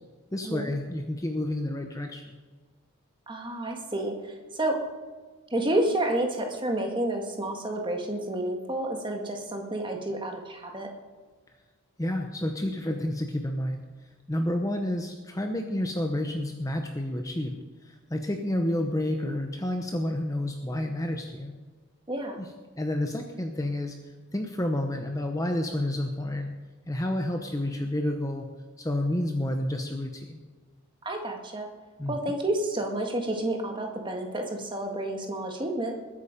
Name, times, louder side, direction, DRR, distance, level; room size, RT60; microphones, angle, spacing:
voice 1, 0.3-2.4 12.0-13.8 14.3-21.5 22.3-22.5 22.8-24.0 24.3-26.5 26.9-28.5 28.8-30.4 32.0-32.1, left 1 dB, 15° left, 4 dB, 0.8 m, -30 dB
voice 2, 3.3-4.8 5.5-10.9 22.1-22.4 31.0-31.7 32.1-36.0, right 1 dB, 20° right, 2 dB, 1.8 m, -30 dB
20.5 x 8.6 x 5.2 m, 1.4 s
head